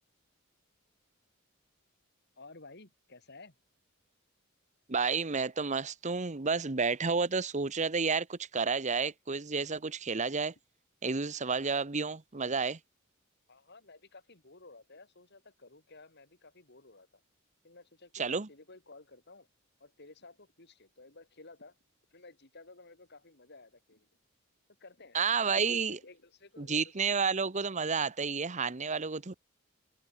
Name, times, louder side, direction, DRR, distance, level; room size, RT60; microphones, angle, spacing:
voice 1, 2.4-3.5 13.5-17.1 17.6-19.5 19.8-21.8 22.1-24.1 24.8-27.2 28.8-29.2, left 3 dB, 55° left, 4.1 m, -54 dB
voice 2, 4.9-10.5 11.0-12.8 18.1-18.5 25.1-26.0 26.6-29.4, right 5 dB, 35° right, 1.0 m, -31 dB
head